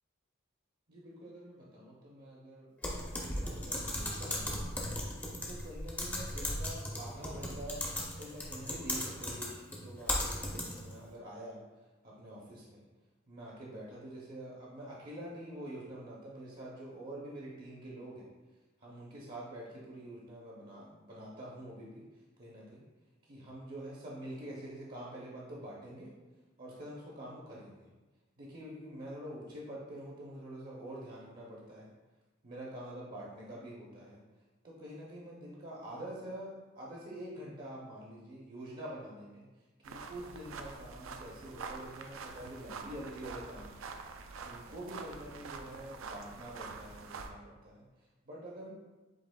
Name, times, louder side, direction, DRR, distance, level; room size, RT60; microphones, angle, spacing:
voice 1, 0.9-4.9 5.5-7.9 8.2-12.8 13.3-18.3 18.8-22.8 23.2-26.1 26.6-27.9 28.4-31.9 32.4-34.2 34.6-43.8 44.4-48.7, right 1 dB, 45° right, -5 dB, 0.7 m, -46 dB
Typing, 2.8-10.9, left 1 dB, 10° left, 0.5 m, -37 dB
sound 1, 39.8-47.3, right 4 dB, 80° right, 0.4 m, -46 dB
7.6 x 2.9 x 2.2 m, 1.2 s
head